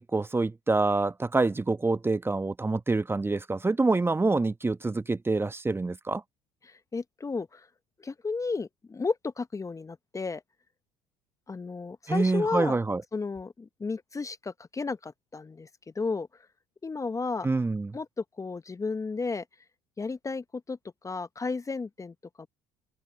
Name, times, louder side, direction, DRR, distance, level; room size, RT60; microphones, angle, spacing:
voice 1, 0.0-6.2 12.1-13.0 17.4-17.9, right 3 dB, 15° right, 1.2 m, -26 dB
voice 2, 6.6-7.7 8.0-10.4 11.5-12.8 13.1-15.7 15.9-16.3 16.8-17.5 17.9-19.4 20.0-20.8 21.0-22.5, left 4 dB, 20° left, 1.1 m, -33 dB
hypercardioid pair, 60°, 15 cm